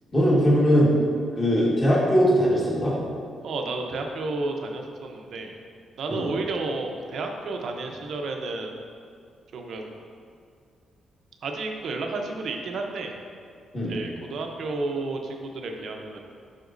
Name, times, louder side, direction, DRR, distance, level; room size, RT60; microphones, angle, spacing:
voice 1, 0.1-0.9 1.4-2.9 6.1-6.3 13.7-14.0, equal, 15° left, -6 dB, 1.5 m, -20 dB
voice 2, 3.4-5.6 6.0-8.7 9.5-9.9 11.4-13.1 13.9-16.2, right 3 dB, 60° right, 2 dB, 0.7 m, -31 dB
7.9 x 5.8 x 2.6 m, 2.3 s
wide cardioid pair, 170°, 0 cm